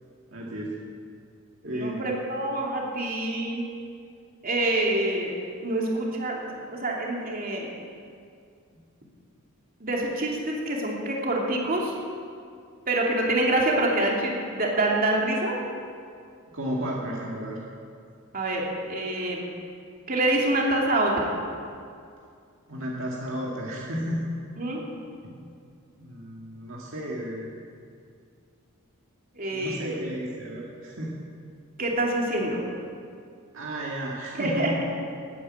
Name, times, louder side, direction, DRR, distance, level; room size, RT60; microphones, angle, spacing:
voice 1, 0.3-0.7 1.6-2.1 16.5-17.6 22.7-24.2 25.2-25.4 26.0-27.5 29.5-31.1 33.5-34.8, equal, 65° right, -3 dB, 2.1 m, -33 dB
voice 2, 1.6-3.7 4.4-5.3 5.6-7.7 9.8-11.9 12.9-15.6 18.3-19.5 20.1-21.4 24.6-24.8 29.3-29.8 31.8-32.6 34.4-34.7, right 1 dB, 45° right, -2 dB, 2.8 m, -26 dB
14.0 x 9.6 x 8.9 m, 2.3 s
head